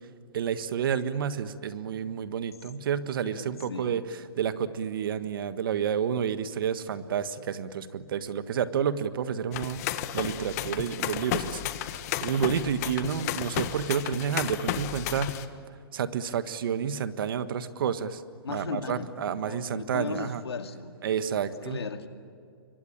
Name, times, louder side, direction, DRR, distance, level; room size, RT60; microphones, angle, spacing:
voice 1, 0.3-4.0 4.4-9.8 10.1-11.6 11.9-15.4 15.9-18.2 18.5-20.4 21.0-21.8, right 8 dB, 60° right, 12 dB, 1.5 m, -30 dB
voice 2, 3.2-4.0 18.4-20.9 21.6-22.1, left 5 dB, 90° left, 7 dB, 2.3 m, -37 dB
sound 1, 9.5-15.5, left 12 dB, 40° left, 1.4 m, -33 dB
27.0 x 23.5 x 8.8 m, 2.4 s
hypercardioid pair, 145°, 13 cm